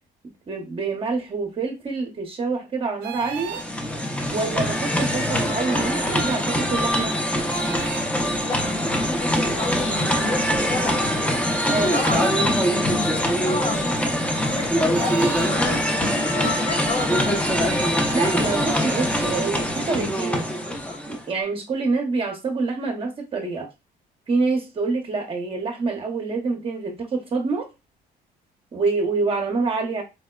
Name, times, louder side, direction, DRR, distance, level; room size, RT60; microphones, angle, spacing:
voice 1, 0.5-3.6 4.3-7.2 11.7-12.1 18.1-20.5 21.1-23.7 24.3-27.7 28.7-30.0, right 4 dB, 30° right, 0.7 m, -26 dB
sound 1, 3.0-3.7 5.7-5.9 7.4-8.1 10.4-10.6 11.9-12.4 14.9-15.5 16.4-16.6 17.6-19.6, right 10 dB, 85° right, 0.4 m, -36 dB
sound 2, 3.2-21.3, equal, 5° left, 0.5 m, -23 dB
voice 2, 8.4-11.0 11.7-18.1, left 3 dB, 40° left, 1.3 m, -32 dB
4.2 x 2.1 x 2.2 m
cardioid pair, 110°, 17 cm